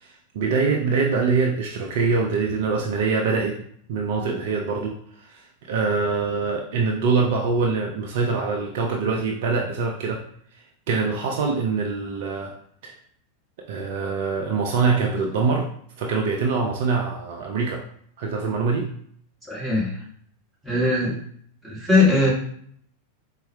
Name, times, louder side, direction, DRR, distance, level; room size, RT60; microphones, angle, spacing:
voice 1, 0.0-3.6 3.9-5.0 5.2-10.2 10.9-12.5 12.8-12.9 13.7-15.7 16.0-17.8 18.2-18.9, right 4 dB, 50° right, 0 dB, 0.5 m, -24 dB
voice 2, 19.5-20.0 20.6-21.1 21.6-22.3, left 2 dB, 5° right, -6 dB, 1.5 m, -20 dB
4.2 x 2.2 x 3.3 m, 0.63 s
figure-of-eight pair, 90°, 0 cm